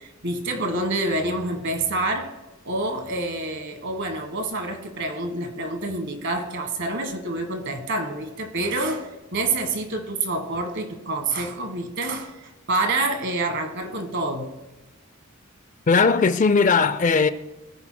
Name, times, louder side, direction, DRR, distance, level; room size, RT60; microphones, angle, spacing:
voice 1, 0.0-2.3 2.6-12.4 12.7-14.5, right 2 dB, 55° right, 1.4 m, -27 dB
voice 2, 15.9-17.3, left 4 dB, 35° left, 0.4 m, -18 dB
19.5 x 9.4 x 2.2 m
head